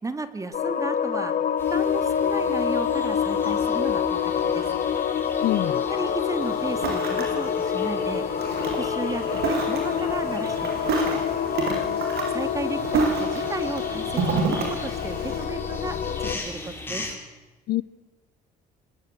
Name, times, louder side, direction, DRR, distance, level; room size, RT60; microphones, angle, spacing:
voice 1, 0.0-1.3 1.7-4.8 5.9-8.2 8.8-11.2 12.3-17.1, right 3 dB, 20° right, 10 dB, 2.5 m, -34 dB
sound 1, 0.5-16.4, left 8 dB, 50° left, 1.9 m, -26 dB
sound 2, 1.6-17.2, left 2 dB, 15° left, 6.7 m, -40 dB
voice 2, 5.4-5.8 11.7-12.2 17.7-17.8, left 15 dB, 70° left, 19 dB, 0.8 m, -27 dB
Ocean, 6.4-15.4, right 4 dB, 70° right, 7.6 m, -30 dB
25.5 x 20.5 x 8.1 m, 1.2 s
cardioid pair, 110°, 17 cm